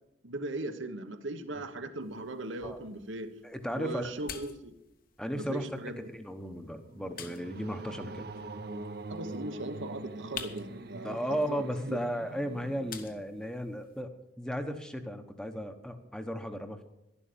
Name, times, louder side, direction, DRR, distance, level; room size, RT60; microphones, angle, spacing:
voice 1, 0.2-3.3 3.8-4.7 5.4-6.0 9.1-12.0, right 2 dB, 80° right, 8 dB, 1.2 m, -39 dB
sound 1, 2.0-14.0, left 7 dB, 45° left, 1.1 m, -50 dB
voice 2, 3.4-4.1 5.2-5.7 6.1-8.2 11.0-14.1 14.4-16.8, equal, 5° left, 7 dB, 0.9 m, -35 dB
sound 2, 6.2-13.6, right 2 dB, 55° right, 0.8 m, -44 dB
11.5 x 11.5 x 6.9 m, 0.88 s
head